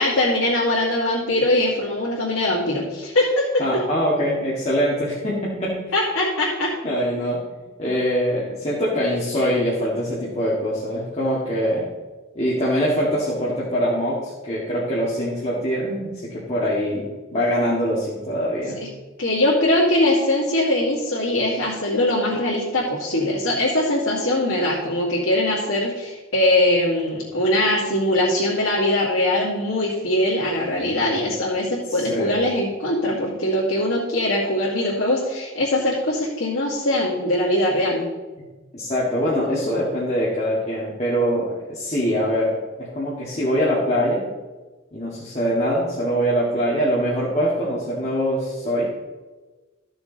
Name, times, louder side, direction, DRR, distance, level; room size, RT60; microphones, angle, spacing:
voice 1, 0.0-3.5 5.9-6.7 18.8-18.9 19.2-38.1, left 1 dB, 85° left, -7 dB, 2.5 m, -21 dB
voice 2, 3.6-5.9 6.8-7.4 7.8-11.9 12.4-18.8 31.9-32.4 38.7-44.3 44.9-48.8, equal, 35° left, -7 dB, 2.0 m, -23 dB
14.0 x 6.9 x 4.0 m, 1.2 s
head